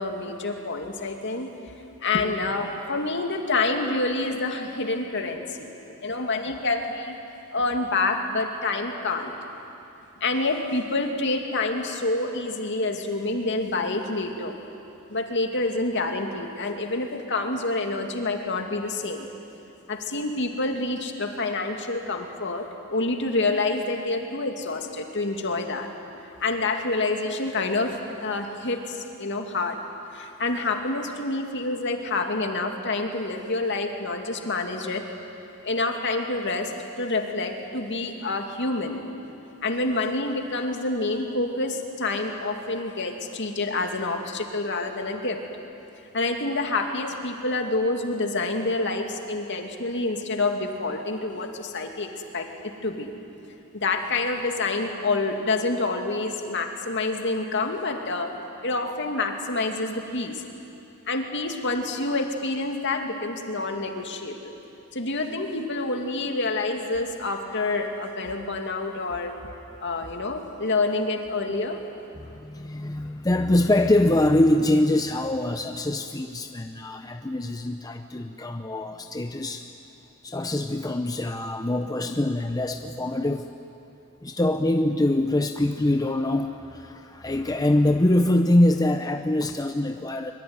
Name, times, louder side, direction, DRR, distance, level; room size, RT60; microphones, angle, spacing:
voice 1, 0.0-1.5 2.0-7.2 7.5-9.3 10.2-14.6 15.1-19.3 19.9-25.9 26.2-27.9 28.2-29.8 30.1-35.0 35.6-36.7 37.0-39.0 39.6-45.4 46.1-53.1 53.7-58.3 58.6-60.4 61.1-64.5 64.9-69.3 69.8-71.8, left 3 dB, 55° left, 3 dB, 2.5 m, -27 dB
voice 2, 72.2-79.7 80.2-83.5 84.2-90.3, left 1 dB, 20° left, 6 dB, 0.7 m, -24 dB
24.5 x 23.0 x 9.7 m, 2.8 s
head